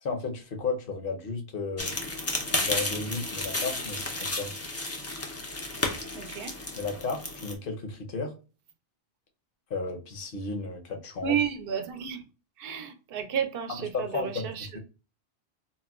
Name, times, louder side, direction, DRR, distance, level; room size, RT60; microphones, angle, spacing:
voice 1, 0.0-1.9 2.6-4.5 6.8-8.3 9.7-11.4 13.9-14.8, left 3 dB, 60° left, 0.9 m, -33 dB
sound 1, 1.8-7.5, left 2 dB, 25° left, 0.3 m, -32 dB
voice 2, 6.1-6.6 11.2-12.2 12.6-14.7, right 8 dB, 65° right, 0.7 m, -31 dB
4.1 x 2.1 x 2.3 m
omnidirectional pair, 1.1 m